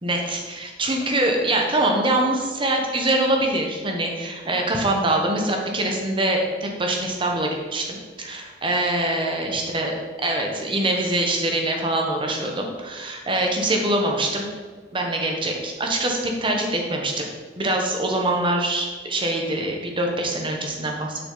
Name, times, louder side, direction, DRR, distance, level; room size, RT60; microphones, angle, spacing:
voice 1, 0.0-9.9 10.2-14.5 14.9-17.3 17.6-21.2, right 1 dB, 30° right, 1 dB, 1.1 m, -24 dB
6.7 x 6.0 x 3.9 m, 1.4 s
head